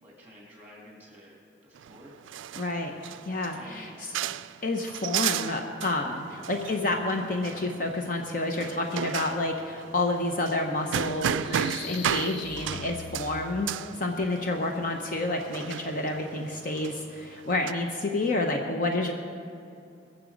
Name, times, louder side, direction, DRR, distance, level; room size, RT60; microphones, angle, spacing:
voice 1, 0.0-2.2 3.5-4.0, equal, 10° right, -3 dB, 3.0 m, -50 dB
sound 1, 1.8-17.7, right 9 dB, 85° right, 0.3 m, -35 dB
voice 2, 2.6-2.9 3.2-4.1 4.6-13.7 14.0-19.1, left 2 dB, 45° left, 2 dB, 0.8 m, -29 dB
sound 2, 11.2-14.1, left 8 dB, 65° left, 0.3 m, -42 dB
21.5 x 7.4 x 5.1 m, 2.6 s
head